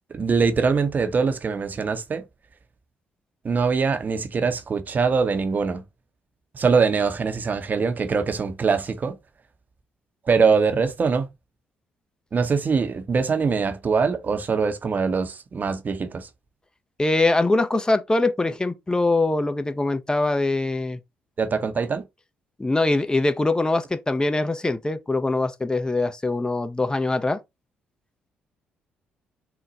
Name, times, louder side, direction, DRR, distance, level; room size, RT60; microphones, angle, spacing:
voice 1, 0.1-2.2 3.4-5.8 6.5-9.2 10.3-11.3 12.3-16.3 21.4-22.0, right 5 dB, 40° right, 0.7 m, -23 dB
voice 2, 17.0-21.0 22.6-27.4, left 2 dB, 15° left, 0.6 m, -23 dB
3.9 x 2.2 x 4.0 m
hypercardioid pair, 50°, 4 cm